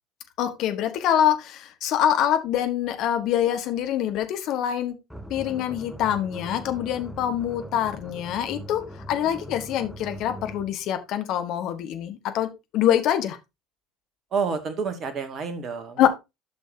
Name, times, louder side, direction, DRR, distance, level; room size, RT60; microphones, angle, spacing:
voice 1, 0.4-4.9 5.3-8.8 9.1-13.4 16.0-16.1, left 10 dB, 50° left, 1.5 m, -25 dB
sound 1, 5.1-10.8, right 1 dB, ahead, 1.0 m, -41 dB
voice 2, 14.3-16.1, right 5 dB, 40° right, 2.1 m, -29 dB
12.0 x 6.2 x 2.8 m
figure-of-eight pair, 65°, 0 cm